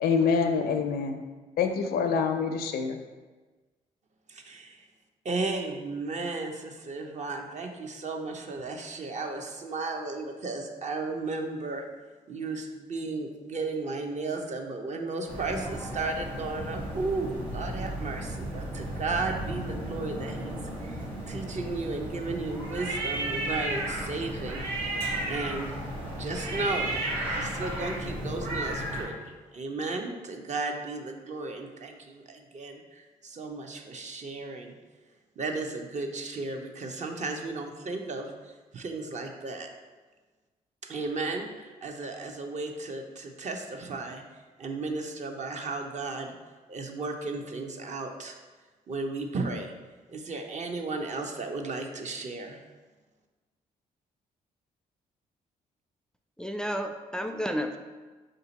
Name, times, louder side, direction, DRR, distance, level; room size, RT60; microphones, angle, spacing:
voice 1, 0.0-1.2 1.6-3.0, left 5 dB, 70° left, 6 dB, 0.5 m, -26 dB
voice 2, 4.3-4.9 5.2-11.8 12.3-25.7 26.0-27.0 27.2-34.8 35.4-39.7 40.8-44.2 44.6-46.3 46.7-48.4 48.9-49.7 50.1-52.6, right 3 dB, 45° right, 3 dB, 0.7 m, -34 dB
sound 1, 15.3-29.0, right 1 dB, 85° right, 1.3 m, -34 dB
voice 3, 56.4-57.8, equal, 5° left, 5 dB, 0.3 m, -31 dB
4.3 x 2.7 x 3.9 m, 1.3 s
hypercardioid pair, 50°, 17 cm